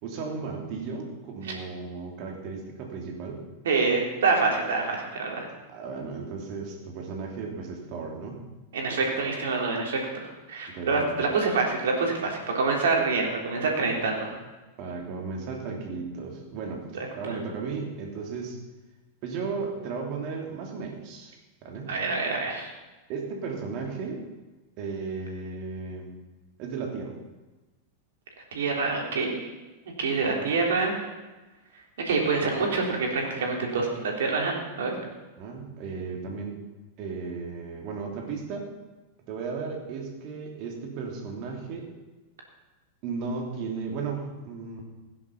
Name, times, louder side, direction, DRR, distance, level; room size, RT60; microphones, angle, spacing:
voice 1, 0.0-3.4 5.7-8.4 10.7-11.1 14.8-16.9 17.1-18.6 19.2-21.9 23.1-24.2 24.8-26.1 26.6-27.2 35.4-36.6 37.0-38.7 39.3-41.9 43.0-44.8, right 4 dB, 40° right, 1 dB, 3.0 m, -35 dB
voice 2, 3.7-5.5 8.7-14.4 21.9-22.7 28.5-29.5 30.0-31.0 32.1-34.9, right 4 dB, 60° right, 0 dB, 3.5 m, -26 dB
16.5 x 10.5 x 5.6 m, 1.2 s
figure-of-eight pair, 90°, 0 cm